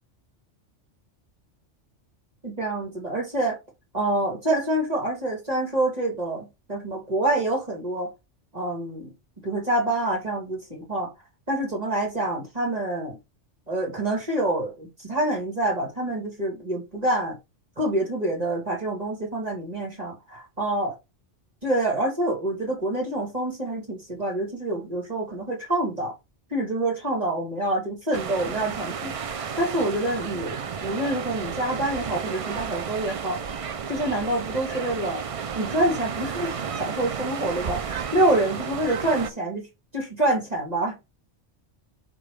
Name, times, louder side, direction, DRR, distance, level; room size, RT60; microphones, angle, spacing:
voice 1, 2.4-3.6 3.9-8.1 8.5-11.1 11.5-13.2 13.7-17.4 17.8-20.9 21.6-26.1 26.5-33.4 33.9-35.2 35.5-39.7 39.9-41.0, right 1 dB, 35° right, 2.6 m, -27 dB
sound 1, 28.1-39.3, right 6 dB, 60° right, 0.3 m, -32 dB
5.2 x 3.8 x 4.8 m
omnidirectional pair, 1.2 m